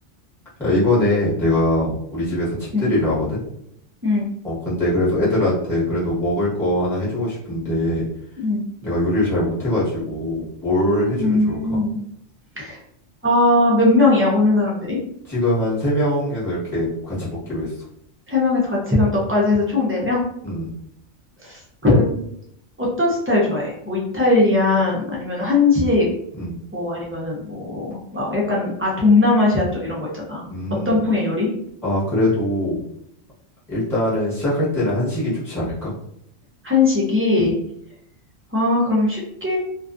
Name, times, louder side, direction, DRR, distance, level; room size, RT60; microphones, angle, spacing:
voice 1, 0.6-3.4 4.4-8.1 8.8-11.8 15.3-17.7 20.4-20.7 26.4-26.5 30.5-31.0 31.8-32.8 33.7-35.9 37.4-37.5, left 1 dB, ahead, -9 dB, 1.0 m, -22 dB
voice 2, 11.2-12.0 12.6-12.8 13.2-15.0 18.3-20.3 21.4-22.3 22.8-26.1 26.7-30.4 30.8-31.5 36.6-37.5 38.5-39.6, left 2 dB, 20° right, -5 dB, 0.3 m, -19 dB
2.4 x 2.3 x 2.4 m, 0.73 s
omnidirectional pair, 1.3 m